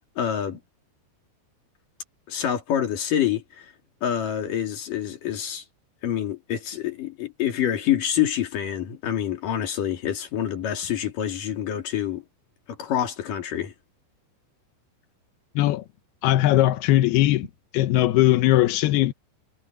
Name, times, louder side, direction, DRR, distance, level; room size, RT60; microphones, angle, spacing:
voice 1, 0.2-0.6 2.3-3.7 4.0-5.6 6.0-12.2 12.7-13.7, left 10 dB, 50° left, 3.8 m, -27 dB
voice 2, 16.2-17.5 17.7-19.1, left 15 dB, 80° left, 2.4 m, -19 dB
omnidirectional pair, 5.6 m